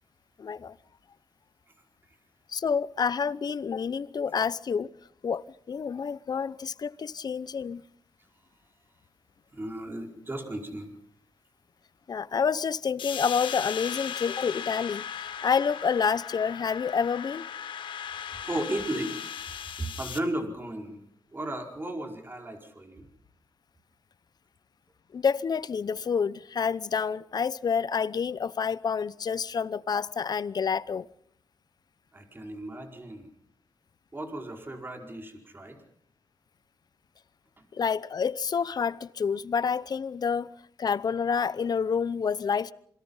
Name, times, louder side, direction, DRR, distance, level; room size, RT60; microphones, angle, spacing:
voice 1, 0.4-0.7 2.5-4.9 5.2-7.8 12.1-15.1 15.4-17.4 25.1-31.1 37.7-40.5 40.8-42.7, left 6 dB, 55° left, 0.8 m, -28 dB
voice 2, 9.5-10.9 18.4-19.2 19.6-21.0 21.3-23.0 32.1-33.3 34.1-35.8, right 1 dB, 25° right, 4.9 m, -35 dB
sound 1, 13.0-20.2, left 8 dB, 90° left, 1.7 m, -37 dB
27.5 x 21.5 x 5.7 m
cardioid pair, 85°, 8 cm